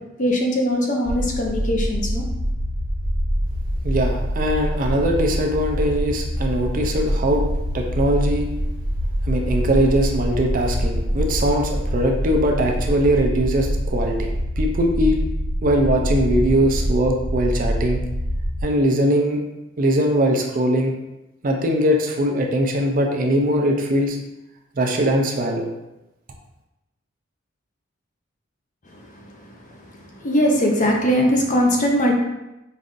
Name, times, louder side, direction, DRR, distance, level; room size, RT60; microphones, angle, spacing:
voice 1, 0.2-2.2 28.9-29.5 30.1-32.2, equal, 40° left, 0 dB, 0.6 m, -21 dB
sound 1, 1.0-18.6, equal, 65° right, 1.2 m, -25 dB
voice 2, 3.8-7.4 7.7-8.5 9.3-15.2 15.6-18.0 18.6-19.4 19.8-20.9 21.4-24.2 24.8-25.7, right 1 dB, 40° right, 2 dB, 0.4 m, -21 dB
5.3 x 2.5 x 2.5 m, 0.94 s
head